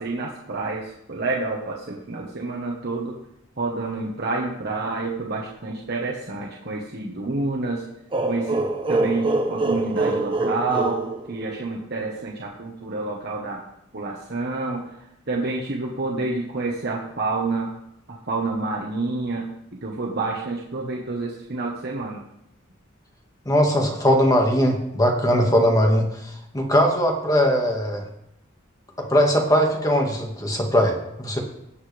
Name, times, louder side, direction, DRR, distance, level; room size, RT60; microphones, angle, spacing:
voice 1, 0.0-3.1 3.6-7.8 8.2-8.6 8.9-13.6 13.9-14.8 15.3-17.7 18.1-19.5 19.8-22.2, right 3 dB, 55° right, -2 dB, 1.3 m, -28 dB
sound 1, 8.1-11.8, right 2 dB, 25° right, 0.9 m, -25 dB
voice 2, 23.5-26.1 26.5-28.0 29.0-31.4, equal, 20° left, 2 dB, 1.8 m, -20 dB
17.0 x 7.9 x 3.4 m, 0.80 s
head